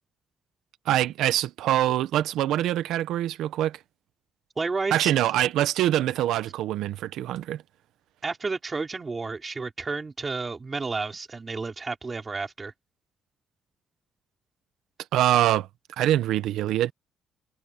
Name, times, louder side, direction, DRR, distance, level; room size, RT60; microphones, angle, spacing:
voice 1, 0.8-3.8 4.9-7.6 15.1-15.7 16.0-16.9, right 13 dB, 85° right, 1.3 m, -24 dB
voice 2, 4.6-5.1 8.2-12.7, right 4 dB, 20° right, 4.5 m, -31 dB
cardioid pair, 175°, 0 cm